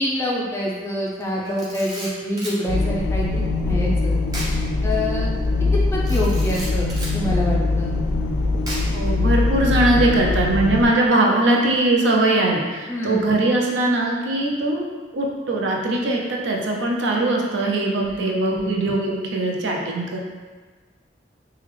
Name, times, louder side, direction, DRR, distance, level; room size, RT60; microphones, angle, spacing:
voice 1, 0.0-4.1 4.8-5.3 5.9-6.9 7.1-7.9 12.9-13.2 18.0-18.7, equal, 15° left, -4 dB, 0.4 m, -26 dB
Camera, 1.4-2.6 4.3-4.6 4.9-5.0 6.0-7.2 8.7-9.1, right 1 dB, 20° right, 0.7 m, -34 dB
sound 1, 2.7-10.9, left 3 dB, 85° left, 0.3 m, -22 dB
voice 2, 8.9-14.9 15.1-20.2, right 2 dB, 75° right, -1 dB, 0.5 m, -21 dB
3.5 x 2.2 x 3.2 m, 1.4 s
head